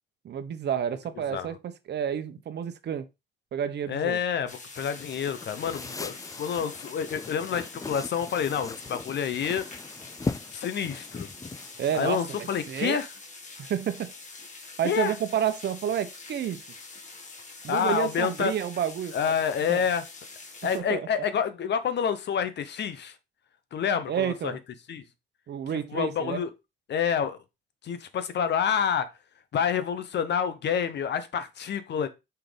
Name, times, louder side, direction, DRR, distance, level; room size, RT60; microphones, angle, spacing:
voice 1, 0.2-3.1 3.5-4.2 11.8-13.0 13.6-14.1 14.8-16.6 17.6-19.3 19.7-19.8 20.7-21.1 24.1-24.6 25.5-26.4, right 9 dB, 60° right, 0.9 m, -30 dB
voice 2, 3.9-9.7 10.5-11.3 11.9-13.1 14.8-15.1 17.7-18.5 19.1-20.0 20.6-23.1 23.7-24.6 24.9-25.0 25.7-26.5 26.9-27.4 27.8-29.1 29.5-32.1, left 7 dB, 60° left, 1.0 m, -28 dB
sound 1, 4.5-20.8, left 3 dB, 40° left, 1.8 m, -45 dB
sound 2, 4.8-12.8, left 3 dB, 15° left, 0.4 m, -39 dB
5.7 x 3.9 x 5.1 m
cardioid pair, 90°, 20 cm